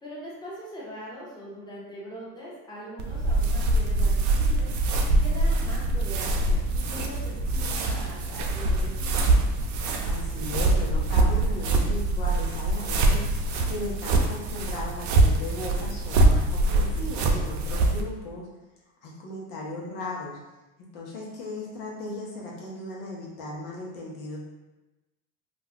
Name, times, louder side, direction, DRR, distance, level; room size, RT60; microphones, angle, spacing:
voice 1, 0.0-4.7 5.2-9.3, equal, 10° left, -6 dB, 1.1 m, -41 dB
sound 1, 3.0-18.0, right 2 dB, 45° right, 0.5 m, -24 dB
voice 2, 5.0-5.5 10.0-13.3 13.7-18.5 19.0-20.4 20.9-24.4, left 2 dB, 60° left, -4 dB, 1.0 m, -37 dB
2.4 x 2.4 x 3.5 m, 1.1 s
hypercardioid pair, 90°, 42 cm